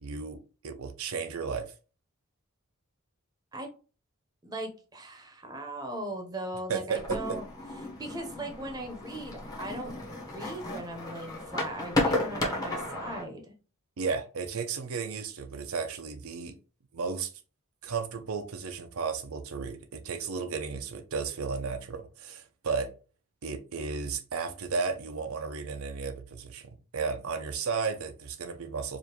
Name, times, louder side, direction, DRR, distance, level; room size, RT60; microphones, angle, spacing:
voice 1, 0.0-1.7 6.7-7.4 14.0-16.5 16.9-17.3 17.8-22.9 23.4-29.0, right 5 dB, 80° right, 0.6 m, -34 dB
voice 2, 4.4-7.5 8.0-9.9 10.3-13.5 24.5-24.6, right 1 dB, 20° right, 0.8 m, -38 dB
sound 1, 6.9-13.2, left 1 dB, 15° left, 0.9 m, -33 dB
4.9 x 2.6 x 3.0 m
head